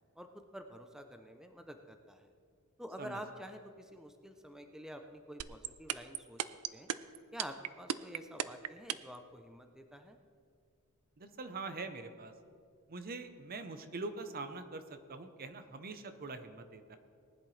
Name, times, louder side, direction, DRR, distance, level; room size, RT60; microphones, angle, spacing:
voice 1, 0.2-2.3 2.8-6.4 6.7-6.9 7.3-10.2, equal, 5° right, 5 dB, 0.6 m, -48 dB
sound 1, 5.4-9.2, right 10 dB, 90° right, 0.5 m, -34 dB
voice 2, 11.2-12.3 12.9-17.0, right 3 dB, 45° right, 9 dB, 0.8 m, -43 dB
19.5 x 10.5 x 3.3 m, 2.3 s
head